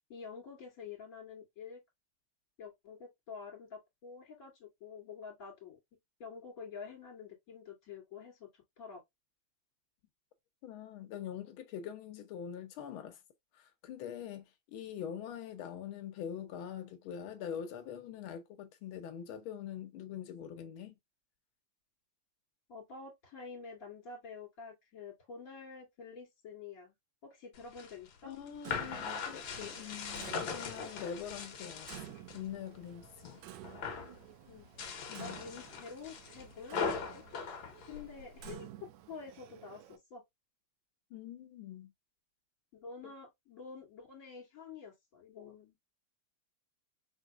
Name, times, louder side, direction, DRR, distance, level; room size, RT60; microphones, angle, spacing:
voice 1, 0.1-1.8 2.6-5.8 6.2-8.5 8.8-9.0 22.7-26.9 27.2-28.3 34.5-34.7 35.2-37.2 37.9-38.7 39.1-40.2 42.7-45.7, left 5 dB, 30° left, 2.6 m, -48 dB
voice 2, 10.6-13.2 13.5-20.9 28.2-33.4 35.1-35.4 41.1-41.9, left 9 dB, 90° left, 1.1 m, -44 dB
sound 1, 27.6-32.4 32.8-33.4 33.6-34.2 34.6-38.5, left 5 dB, 55° left, 1.5 m, -40 dB
Clock, 28.6-40.0, right 12 dB, 80° right, 2.0 m, -52 dB
5.6 x 3.3 x 2.4 m
omnidirectional pair, 3.3 m